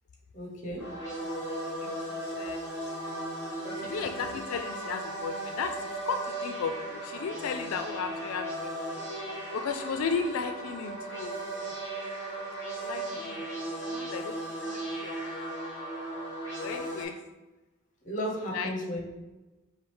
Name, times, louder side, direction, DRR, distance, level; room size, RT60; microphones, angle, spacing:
voice 1, 0.3-0.8 14.6-14.8 18.0-19.0, equal, 35° left, 1 dB, 0.8 m, -34 dB
sound 1, 0.8-17.0, right 1 dB, 10° left, 1.3 m, -36 dB
voice 2, 1.2-2.6 2.9-3.0 3.8-8.9 9.5-11.8 12.6-13.5 13.8-15.5 16.6-17.2 18.5-19.0, left 5 dB, 90° left, 7 dB, 0.3 m, -36 dB
4.7 x 2.7 x 3.4 m, 1.1 s
head